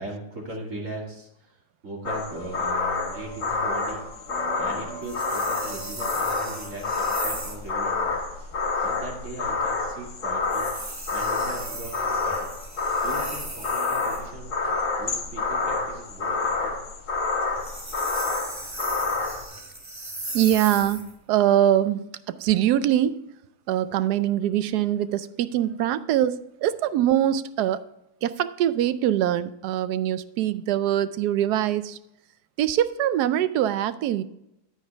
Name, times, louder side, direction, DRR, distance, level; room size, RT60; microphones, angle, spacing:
voice 1, 0.0-1.6 1.8-8.2 8.8-10.7 11.1-12.5 13.0-14.6 15.0-16.7, right 2 dB, 50° right, 2.5 m, -39 dB
sound 1, 2.1-19.5, left 4 dB, 50° left, 1.5 m, -28 dB
sound 2, 5.0-7.7 10.4-14.3 17.5-21.1, right 1 dB, 15° right, 0.6 m, -37 dB
voice 2, 20.3-23.3 23.7-27.8 28.2-32.0 32.6-34.2, right 11 dB, 75° right, 1.1 m, -23 dB
10.0 x 8.9 x 3.4 m
omnidirectional pair, 1.8 m